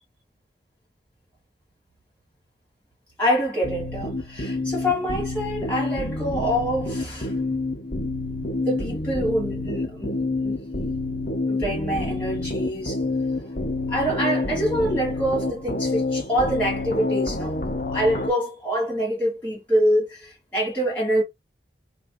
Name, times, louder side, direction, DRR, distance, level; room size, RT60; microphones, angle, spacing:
voice 1, 3.2-7.3 8.6-10.6 11.5-13.0 13.9-21.2, equal, 10° left, 2.5 m, -25 dB
sound 1, 3.6-18.3, left 2 dB, 50° left, 0.9 m, -28 dB
3.9 x 2.6 x 3.6 m
head